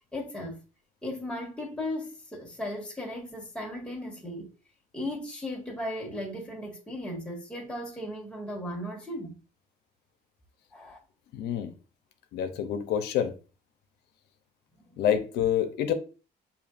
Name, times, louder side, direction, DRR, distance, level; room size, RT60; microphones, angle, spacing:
voice 1, 0.1-0.6 1.0-4.5 4.9-9.4 10.7-11.0, left 1 dB, 5° left, 1.7 m, -36 dB
voice 2, 11.3-11.7 12.3-13.3 15.0-15.9, left 9 dB, 80° left, 0.7 m, -27 dB
6.9 x 2.7 x 2.5 m
cardioid pair, 110°, 17 cm